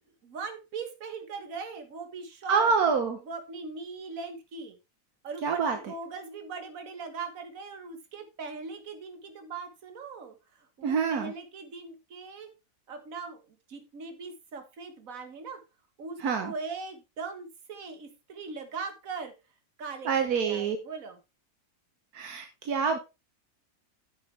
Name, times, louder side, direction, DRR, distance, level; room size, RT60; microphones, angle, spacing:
voice 1, 0.2-2.7 3.2-4.8 5.2-12.5 12.9-15.6 16.0-19.3 19.8-21.2, right 4 dB, 65° right, 7 dB, 1.9 m, -40 dB
voice 2, 2.5-3.2 5.4-5.8 10.8-11.3 16.2-16.5 20.1-20.8 22.1-23.0, right 5 dB, 80° right, 6 dB, 1.6 m, -26 dB
9.5 x 7.7 x 3.3 m, 0.26 s
omnidirectional pair, 1.6 m